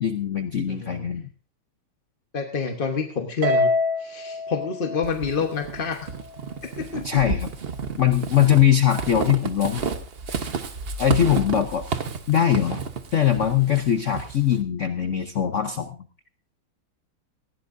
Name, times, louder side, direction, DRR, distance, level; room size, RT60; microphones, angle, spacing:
voice 1, 0.0-1.3 7.0-7.5 8.0-9.8 11.0-11.8 12.3-12.8 13.1-16.1, left 10 dB, 80° left, 7 dB, 0.6 m, -21 dB
voice 2, 0.7-1.1 2.3-3.7 4.0-6.1 6.6-7.2, left 5 dB, 35° left, 3 dB, 0.9 m, -28 dB
Harp, 3.4-5.9, left 2 dB, 75° right, 2.8 m, -25 dB
Walk footsteps / Squeak, 5.0-14.6, right 5 dB, 55° right, 0.6 m, -31 dB
19.0 x 16.0 x 2.6 m, 0.37 s
omnidirectional pair, 2.4 m